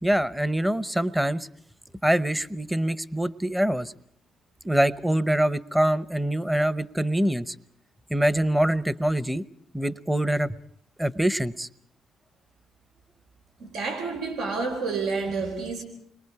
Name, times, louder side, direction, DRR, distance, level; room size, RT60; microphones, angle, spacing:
voice 1, 0.0-1.5 2.0-3.9 4.6-7.5 8.1-9.4 9.7-10.5 11.0-11.7, right 1 dB, 5° right, 0.8 m, -24 dB
voice 2, 13.6-15.8, right 4 dB, 85° right, 3.8 m, -29 dB
29.5 x 22.5 x 4.8 m
cardioid pair, 90°, 0 cm